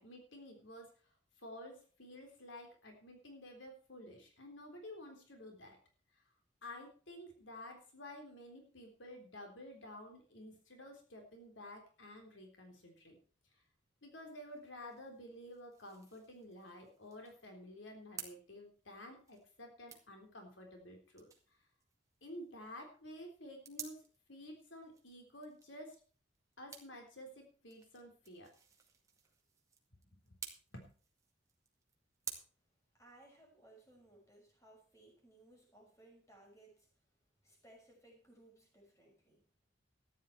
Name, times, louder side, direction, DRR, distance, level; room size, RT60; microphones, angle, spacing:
voice 1, 0.0-5.8 6.1-6.2 6.6-13.2 14.0-21.3 22.2-24.0 24.3-26.0 26.6-28.5 30.0-30.4 30.7-30.9, left 1 dB, 90° left, 3 dB, 3.6 m, -52 dB
sound 1, 14.3-32.3, right 6 dB, 20° right, 2.1 m, -55 dB
voice 2, 32.9-36.9 37.4-39.4, right 1 dB, 15° left, -1 dB, 6.0 m, -62 dB
13.5 x 10.5 x 4.6 m, 0.40 s
head